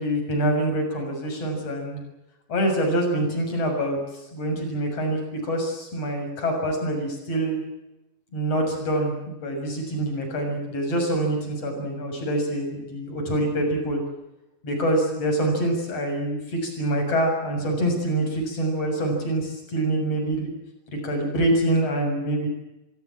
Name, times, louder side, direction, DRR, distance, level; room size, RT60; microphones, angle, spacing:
voice 1, 0.0-2.0 2.5-4.0 4.3-7.6 8.3-14.0 14.6-20.5 20.9-22.5, right 1 dB, 45° left, 3 dB, 7.7 m, -25 dB
27.5 x 16.5 x 8.9 m, 0.94 s
omnidirectional pair, 3.9 m